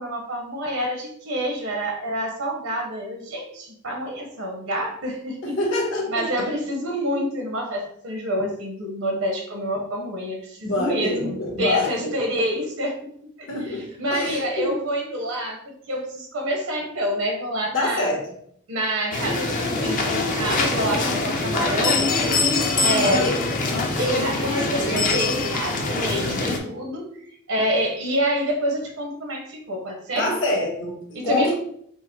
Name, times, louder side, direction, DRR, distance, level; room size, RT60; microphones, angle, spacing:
voice 1, 0.0-5.6 6.1-13.1 13.4-18.1 18.7-22.0 22.8-23.3 24.0-27.1 27.5-30.3 31.1-31.5, equal, 75° right, 2 dB, 1.0 m, -27 dB
voice 2, 5.6-6.2 10.6-12.1 13.5-14.7 17.7-18.3 23.0-23.5 30.1-31.5, left 2 dB, 60° left, -1 dB, 1.3 m, -26 dB
sound 1, 19.1-26.6, left 3 dB, 40° left, 0.6 m, -23 dB
4.6 x 2.1 x 4.5 m, 0.67 s
head